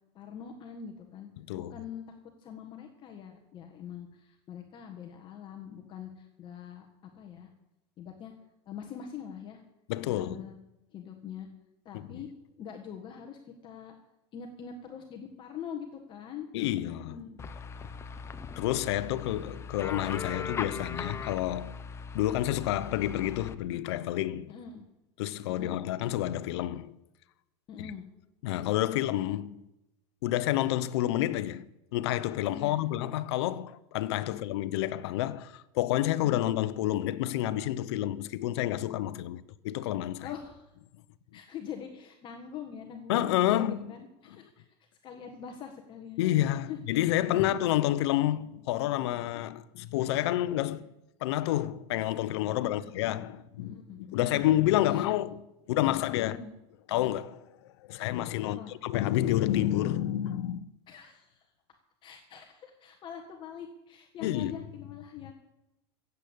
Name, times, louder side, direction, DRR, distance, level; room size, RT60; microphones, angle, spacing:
voice 1, 0.1-1.3 1.5-6.9 7.1-7.5 8.0-8.3 8.7-9.6 10.0-10.6 10.9-11.5 11.8-12.3 12.6-13.9 14.3-16.5 16.8-17.4 17.8-17.9 24.5-24.9 25.5-25.8 27.7-28.0 32.5-32.8 34.3-34.4 40.2-40.7 41.3-44.6 45.0-46.3 46.7-46.8 47.2-47.7 50.1-50.2 52.6-52.9 53.6-54.5 54.9-55.0 56.2-56.5 58.4-58.7 60.9-61.5 62.0-65.3, left 8 dB, 35° left, 1.6 m, -43 dB
voice 2, 1.4-1.7 9.9-10.5 11.9-12.2 16.5-17.2 18.6-21.8 22.1-24.5 25.2-27.0 27.8-27.9 28.4-29.6 30.2-31.6 31.9-40.3 43.1-43.9 46.2-50.9 51.2-56.4 56.9-60.7 64.2-64.5, left 14 dB, 75° left, 0.8 m, -29 dB
sound 1, 17.4-23.5, left 5 dB, 20° left, 0.8 m, -39 dB
15.5 x 8.2 x 8.5 m
supercardioid pair, 135°, 14 cm